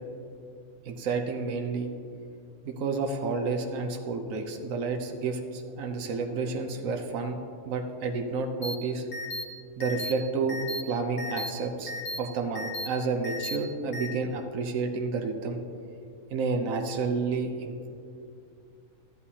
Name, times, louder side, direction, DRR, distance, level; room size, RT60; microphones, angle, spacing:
voice 1, 0.9-1.9 2.6-9.1 9.8-10.6 10.9-11.9 12.2-15.6 16.3-17.7, right 4 dB, 75° right, 3 dB, 1.2 m, -30 dB
sound 1, 8.6-8.7 9.1-9.4 9.8-10.1 10.5-10.8 11.2-11.5 11.9-12.2 12.5-12.9 13.2-13.6 13.9-14.1, left 1 dB, 45° left, 1.4 m, -35 dB
14.0 x 10.5 x 2.8 m, 2.5 s
omnidirectional pair, 1.4 m